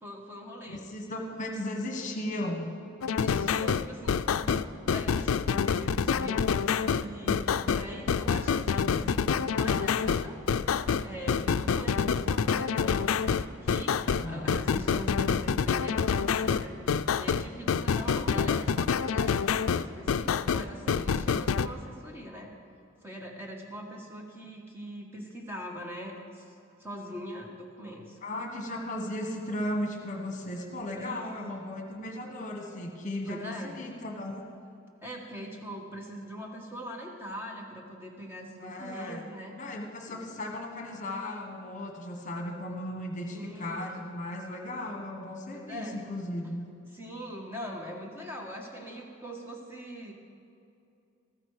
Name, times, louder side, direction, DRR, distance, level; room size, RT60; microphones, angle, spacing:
voice 1, 0.0-0.8 3.1-10.4 11.0-13.1 13.6-16.7 17.2-22.5 23.0-26.5 26.8-28.2 31.0-31.2 33.2-33.8 35.0-39.5 40.1-40.2 43.3-43.8 45.5-46.0 46.9-50.1, equal, 10° right, -1 dB, 1.4 m, -42 dB
voice 2, 0.7-2.7 14.1-14.6 28.2-34.4 38.6-39.3 39.6-46.7, left 1 dB, 40° left, 2 dB, 1.4 m, -36 dB
sound 1, 3.0-21.7, left 6 dB, 85° left, 0.4 m, -27 dB
14.5 x 14.0 x 4.9 m, 2.6 s
head